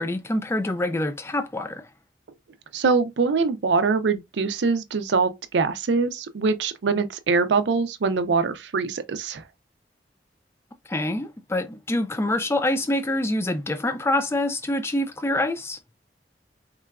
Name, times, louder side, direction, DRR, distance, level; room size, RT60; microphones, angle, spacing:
voice 1, 0.0-1.9 10.9-15.8, left 1 dB, 15° left, 0.3 m, -26 dB
voice 2, 2.7-9.4, right 4 dB, 85° right, 0.5 m, -23 dB
3.8 x 2.3 x 2.2 m
head